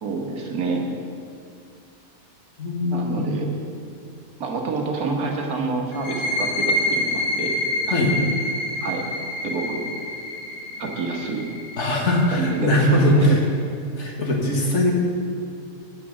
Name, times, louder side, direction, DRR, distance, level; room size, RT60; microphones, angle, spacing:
voice 1, 0.0-0.8 2.9-3.5 4.4-7.5 8.8-9.1 9.4-9.8 10.8-11.5 12.3-13.4, right 4 dB, 75° right, 1 dB, 1.8 m, -28 dB
voice 2, 2.6-3.4 7.9-8.1 11.8-13.4 14.0-14.9, left 1 dB, 50° left, -1 dB, 1.8 m, -20 dB
sound 1, 5.9-13.3, left 1 dB, 85° left, 1.8 m, -27 dB
8.5 x 8.4 x 6.0 m, 2.4 s
omnidirectional pair, 1.6 m